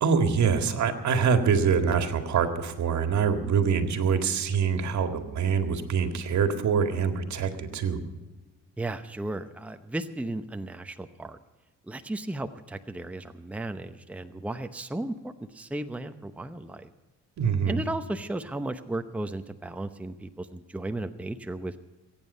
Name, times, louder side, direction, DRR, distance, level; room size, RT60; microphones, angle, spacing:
voice 1, 0.0-8.0 17.4-17.8, right 6 dB, 65° right, 6 dB, 2.0 m, -25 dB
voice 2, 8.8-11.4 11.8-16.9 17.7-21.8, right 2 dB, 5° right, 8 dB, 0.8 m, -35 dB
22.0 x 9.2 x 5.5 m, 1.2 s
cardioid pair, 90°, 30 cm